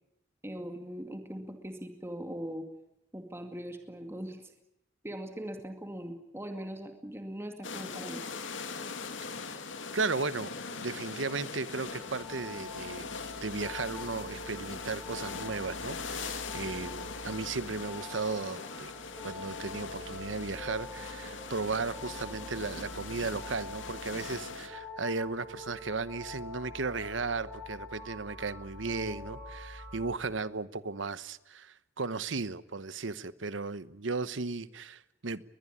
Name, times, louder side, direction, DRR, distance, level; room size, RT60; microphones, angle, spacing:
voice 1, 0.4-2.7 3.1-4.4 5.0-8.2, equal, 15° right, 2.3 m, -40 dB
sound 1, 7.6-24.7, left 4 dB, 70° left, 2.6 m, -41 dB
voice 2, 9.9-10.5 10.8-13.1 13.4-18.9 19.2-35.4, right 4 dB, 70° right, 1.0 m, -35 dB
sound 2, 11.9-30.2, left 2 dB, 10° left, 6.3 m, -45 dB
22.0 x 21.0 x 8.7 m
head